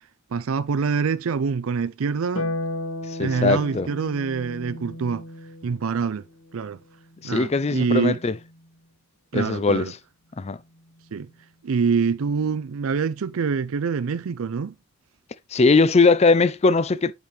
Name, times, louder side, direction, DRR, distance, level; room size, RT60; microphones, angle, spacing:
voice 1, 0.3-2.5 3.2-5.2 5.6-6.2 6.5-6.8 7.2-8.2 9.3-9.9 11.1-11.3 11.6-14.7, right 5 dB, 90° right, 0.4 m, -25 dB
Harp, 2.3-8.9 10.5-11.5, left 1 dB, 80° left, 1.2 m, -36 dB
voice 2, 3.1-3.9 7.2-8.3 9.3-9.9 10.4-10.6 15.5-17.1, left 3 dB, 30° left, 0.4 m, -20 dB
8.0 x 5.2 x 3.2 m
head